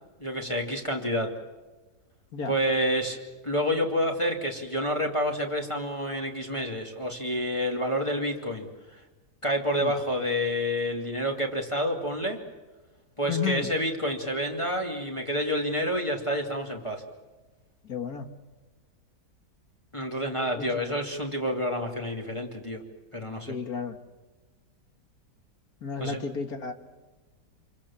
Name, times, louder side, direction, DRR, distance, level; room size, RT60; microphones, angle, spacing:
voice 1, 0.2-1.3 2.5-8.7 9.4-12.4 13.2-17.0 19.9-22.8 23.1-23.5 26.0-26.2, equal, 15° left, 0 dB, 2.7 m, -28 dB
voice 2, 13.2-13.7 17.8-18.3 20.5-20.8 23.5-24.0 25.8-26.7, left 6 dB, 60° left, 6 dB, 2.2 m, -32 dB
28.0 x 23.0 x 7.3 m, 1.2 s
omnidirectional pair, 1.8 m